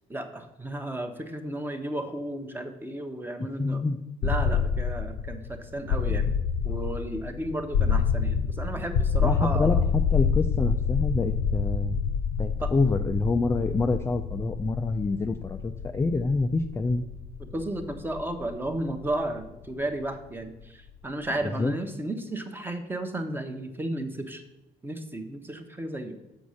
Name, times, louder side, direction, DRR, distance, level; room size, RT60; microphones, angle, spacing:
voice 1, 0.1-3.8 4.2-6.3 6.6-9.8 12.6-12.7 17.5-24.4 24.8-26.2, right 1 dB, 10° right, 6 dB, 0.9 m, -33 dB
voice 2, 3.4-4.3 9.2-12.0 12.4-17.0 21.6-21.7, left 3 dB, 15° left, 5 dB, 0.4 m, -27 dB
sound 1, 4.2-20.1, left 6 dB, 80° left, 0.7 m, -28 dB
7.0 x 5.2 x 6.3 m, 0.98 s
cardioid pair, 110°, 17 cm